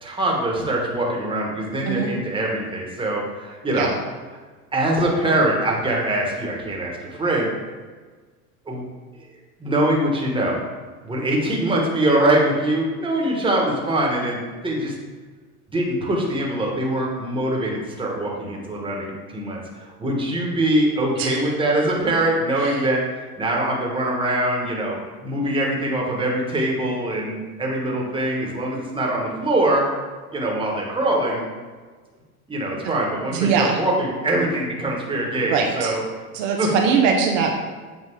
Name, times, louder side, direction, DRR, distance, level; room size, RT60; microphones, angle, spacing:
voice 1, 0.0-3.9 4.7-7.5 8.7-8.8 9.6-10.6 11.0-14.9 15.7-29.8 30.3-31.4 32.5-36.0 36.6-36.7, right 1 dB, 10° right, -2 dB, 1.4 m, -23 dB
voice 2, 33.3-33.8 35.5-35.9 36.3-37.6, right 6 dB, 55° right, 1 dB, 0.9 m, -21 dB
7.9 x 2.6 x 4.6 m, 1.4 s
hypercardioid pair, 100°, 46 cm